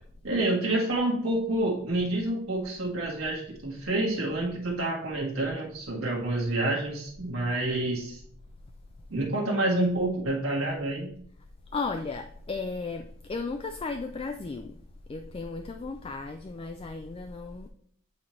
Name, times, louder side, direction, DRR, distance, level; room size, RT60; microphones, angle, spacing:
voice 1, 0.2-8.2 9.1-11.1, right 1 dB, 85° right, -2 dB, 1.6 m, -28 dB
voice 2, 11.7-14.8 15.1-17.7, left 4 dB, 25° left, 6 dB, 0.3 m, -35 dB
8.3 x 4.3 x 3.1 m, 0.63 s
head